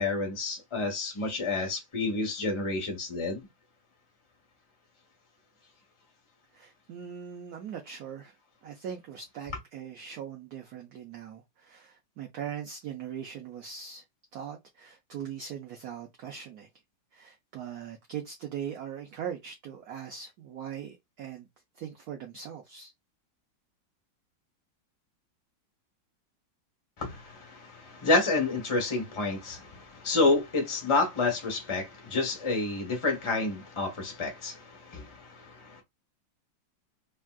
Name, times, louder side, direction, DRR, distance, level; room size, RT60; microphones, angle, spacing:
voice 1, 0.0-3.5 27.0-35.8, left 3 dB, 25° left, 0.7 m, -29 dB
voice 2, 6.5-8.3 8.6-14.0 14.3-16.7 17.1-21.5 21.7-22.9, right 8 dB, 65° right, 1.0 m, -40 dB
3.5 x 2.3 x 2.2 m
omnidirectional pair, 2.1 m